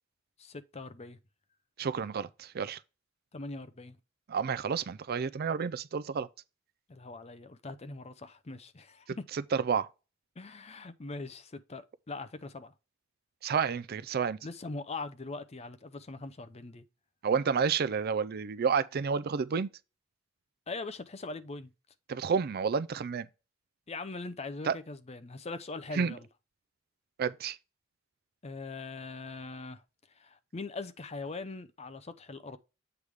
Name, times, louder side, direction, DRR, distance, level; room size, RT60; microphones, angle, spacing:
voice 1, 0.4-1.2 3.3-4.0 6.9-9.2 10.4-12.7 14.4-16.9 20.7-21.7 23.9-26.3 28.4-29.8 30.1-32.6, left 3 dB, 30° left, 0.6 m, -41 dB
voice 2, 1.8-2.8 4.3-6.3 9.5-9.9 13.4-14.4 17.2-19.7 22.1-23.3 24.6-24.8 25.9-26.1 27.2-27.6, right 6 dB, 50° right, 0.4 m, -30 dB
8.0 x 3.5 x 4.7 m
head